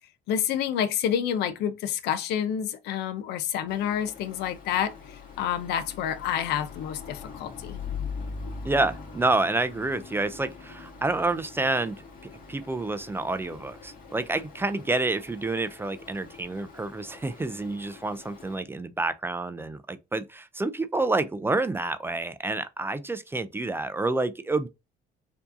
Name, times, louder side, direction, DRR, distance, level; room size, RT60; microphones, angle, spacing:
voice 1, 0.3-7.8, left 9 dB, 80° left, 0.6 m, -29 dB
Stream, 3.7-18.6, left 5 dB, 55° left, 1.9 m, -42 dB
voice 2, 8.6-12.0 12.5-24.7, right 2 dB, 15° right, 0.4 m, -28 dB
4.5 x 2.7 x 2.5 m
cardioid pair, 110°, 17 cm